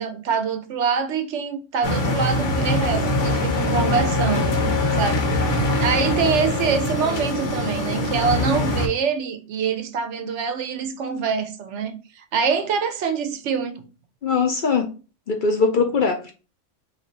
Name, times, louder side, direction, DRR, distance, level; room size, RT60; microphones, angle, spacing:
voice 1, 0.0-4.6 5.0-5.5 5.8-13.8, right 6 dB, 75° right, 1.0 m, -25 dB
sound 1, 1.8-8.9, left 1 dB, 80° left, 1.3 m, -23 dB
voice 2, 14.2-14.9 15.3-16.3, left 4 dB, 55° left, 0.6 m, -21 dB
3.4 x 2.8 x 3.9 m
omnidirectional pair, 1.2 m